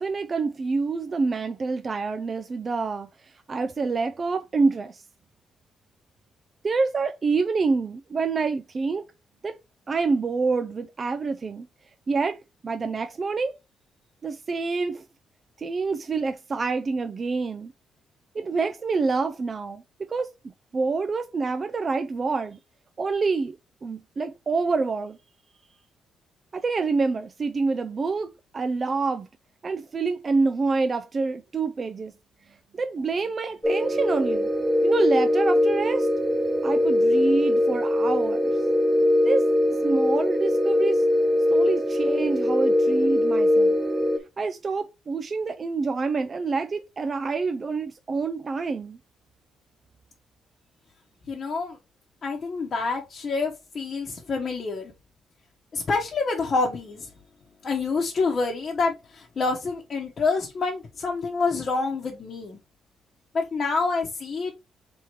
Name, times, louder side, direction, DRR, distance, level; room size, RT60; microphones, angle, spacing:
voice 1, 0.0-5.0 6.6-9.0 9.4-9.6 9.9-11.7 12.1-12.4 12.6-13.6 14.2-15.0 15.6-17.7 18.3-19.8 20.1-20.3 20.7-22.6 23.0-23.6 23.8-25.2 26.5-29.3 29.6-32.1 32.5-34.5 34.8-36.1 36.6-38.5 39.2-41.1 41.5-43.8 44.4-49.0, right 4 dB, 40° right, 0.4 m, -27 dB
sound 1, 33.6-44.2, left 1 dB, 10° right, 0.7 m, -22 dB
voice 2, 51.3-51.8 52.2-54.9 55.7-57.1 57.6-62.6 63.3-64.5, left 4 dB, 45° left, 1.0 m, -27 dB
3.5 x 3.1 x 4.5 m
cardioid pair, 90°, 0 cm